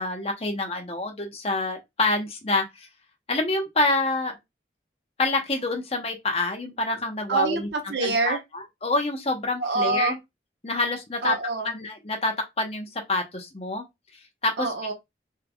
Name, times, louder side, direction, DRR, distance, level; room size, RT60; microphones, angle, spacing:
voice 1, 0.0-2.9 3.3-4.3 5.2-7.7 8.0-10.2 10.6-11.3 11.7-13.8 14.4-14.7, left 2 dB, 35° left, 0.9 m, -27 dB
voice 2, 7.3-8.4 9.6-10.2 11.2-11.7 14.6-14.9, right 3 dB, 75° right, 0.9 m, -26 dB
3.7 x 3.2 x 2.2 m
head